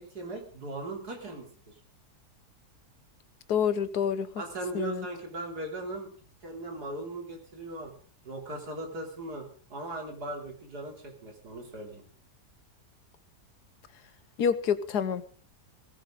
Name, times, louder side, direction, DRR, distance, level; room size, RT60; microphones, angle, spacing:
voice 1, 0.0-1.7 4.4-6.1 6.4-7.9 8.3-12.0, right 2 dB, 75° right, 2 dB, 3.9 m, -38 dB
voice 2, 3.5-4.3 4.7-5.1 14.4-15.3, left 7 dB, 75° left, 13 dB, 1.6 m, -27 dB
19.0 x 15.0 x 3.8 m, 0.42 s
omnidirectional pair, 1.7 m